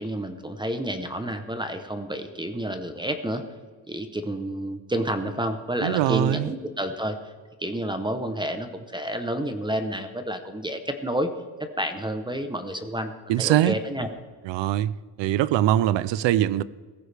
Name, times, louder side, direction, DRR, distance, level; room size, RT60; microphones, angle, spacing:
voice 1, 0.0-3.4 3.9-7.2 7.6-11.3 11.6-14.1, right 1 dB, 10° right, 0.8 m, -30 dB
voice 2, 5.8-6.5 13.3-13.8 14.4-14.9 15.2-16.6, right 13 dB, 85° right, 0.6 m, -22 dB
17.5 x 14.5 x 3.4 m
cardioid pair, 145°, 43 cm